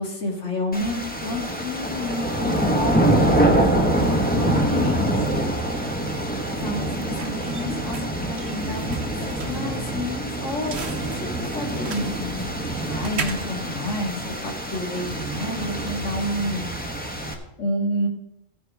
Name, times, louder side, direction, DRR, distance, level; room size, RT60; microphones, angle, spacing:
voice 1, 0.0-5.1 6.6-16.7 17.0-18.1, left 1 dB, 60° left, -1 dB, 2.3 m, -30 dB
sound 1, 0.7-17.3, right 1 dB, 5° left, 1.1 m, -25 dB
sound 2, 7.0-14.7, right 4 dB, 55° right, 1.1 m, -38 dB
Bass guitar, 9.5-15.7, right 3 dB, 20° right, 2.6 m, -41 dB
14.5 x 9.6 x 3.5 m, 0.87 s
omnidirectional pair, 1.4 m